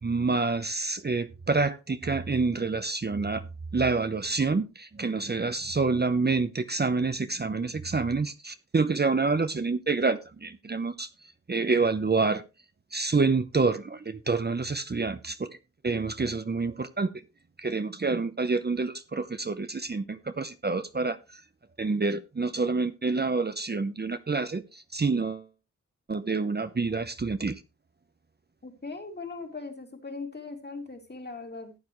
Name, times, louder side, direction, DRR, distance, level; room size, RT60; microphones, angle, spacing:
voice 1, 0.0-3.5 3.7-12.4 12.9-15.6 15.8-17.1 17.6-21.4 21.8-25.5 26.1-27.6, right 4 dB, 35° right, 11 dB, 0.8 m, -27 dB
voice 2, 28.6-31.7, left 3 dB, 35° left, 3 dB, 2.8 m, -39 dB
14.5 x 9.4 x 3.1 m, 0.26 s
wide cardioid pair, 90°, 29 cm